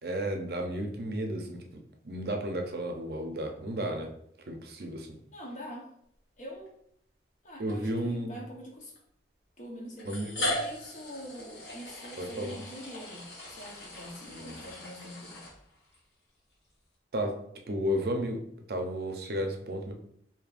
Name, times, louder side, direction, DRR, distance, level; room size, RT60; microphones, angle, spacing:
voice 1, 0.0-4.1 4.5-5.2 7.6-8.4 10.0-10.5 12.2-12.6 14.3-14.6 17.1-17.4 17.7-19.9, equal, 60° right, 3 dB, 0.6 m, -33 dB
voice 2, 5.3-5.9 6.4-6.7 7.4-8.9 9.6-15.4, equal, 45° left, -1 dB, 0.9 m, -44 dB
sound 1, 6.5-6.7 7.7-7.8 9.0-9.1 10.0-16.0, left 1 dB, 70° left, 1.4 m, -38 dB
5.0 x 2.7 x 2.5 m, 0.69 s
head